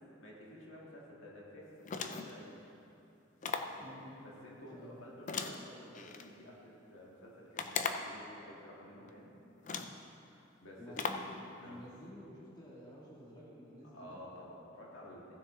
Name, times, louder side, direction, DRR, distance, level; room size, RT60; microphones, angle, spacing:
voice 1, 0.2-2.6 3.7-9.3 10.3-11.2 11.6-11.8 13.9-15.3, left 1 dB, 80° left, -4 dB, 1.8 m, -52 dB
sound 1, 1.8-2.4 3.4-3.8 5.3-6.3 7.6-8.2 9.1-9.2 9.6-10.0 11.0-11.3, left 5 dB, 40° left, 0.5 m, -38 dB
voice 2, 3.8-4.1 4.7-5.0 10.8-14.2, equal, 20° left, -7 dB, 2.4 m, -51 dB
15.5 x 6.7 x 3.8 m, 2.7 s
head